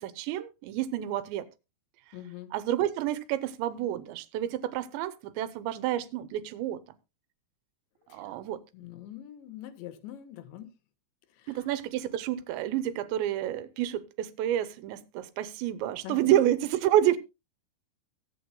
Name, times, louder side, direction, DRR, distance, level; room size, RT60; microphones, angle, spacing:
voice 1, 0.0-1.5 2.5-6.8 8.1-8.6 11.5-17.2, right 12 dB, 85° right, 3.1 m, -29 dB
voice 2, 2.1-2.5 8.1-8.2 8.7-10.7 11.4-11.6 16.0-16.4, left 11 dB, 85° left, 3.5 m, -43 dB
22.0 x 8.7 x 2.2 m
omnidirectional pair, 5.1 m